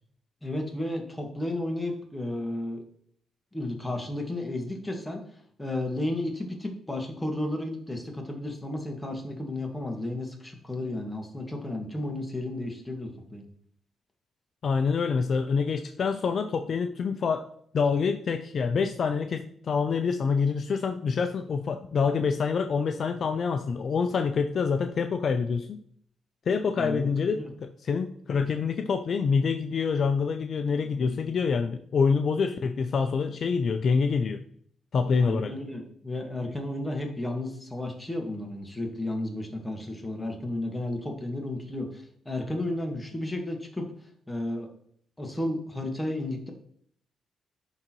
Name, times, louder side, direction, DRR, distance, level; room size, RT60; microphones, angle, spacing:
voice 1, 0.4-2.8 3.5-5.2 5.6-13.4 26.7-27.5 35.2-43.9 44.3-44.7 45.2-46.5, left 1 dB, 10° left, 1 dB, 1.5 m, -33 dB
voice 2, 14.6-17.4 17.7-25.8 26.5-34.4 34.9-35.5, left 5 dB, 55° left, 7 dB, 0.4 m, -26 dB
10.5 x 3.9 x 3.0 m, 0.63 s
cardioid pair, 90°, 0 cm